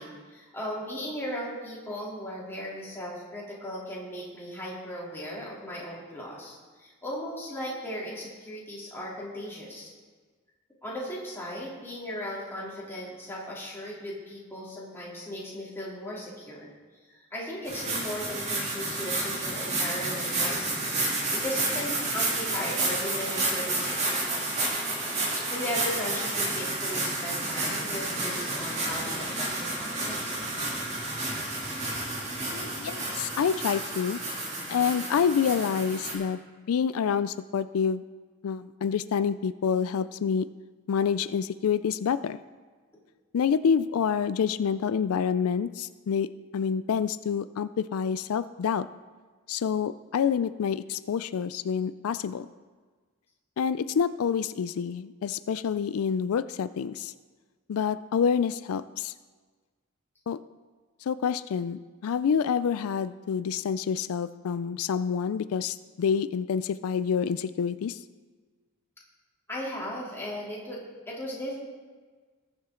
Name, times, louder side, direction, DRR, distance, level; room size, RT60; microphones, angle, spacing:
voice 1, 0.0-9.9 10.8-16.7 17.1-24.6 25.5-30.4 69.5-71.6, equal, 10° left, -6 dB, 3.1 m, -37 dB
sound 1, 17.6-36.1, right 2 dB, 30° right, 2.4 m, -30 dB
voice 2, 32.4-34.2 34.7-36.4 36.7-38.0 38.4-40.5 40.9-42.4 43.3-48.9 49.5-52.5 53.6-57.1 57.7-59.1 60.3-60.4 61.0-68.0, left 7 dB, 90° left, 14 dB, 0.4 m, -27 dB
20.0 x 7.3 x 3.8 m, 1.4 s
head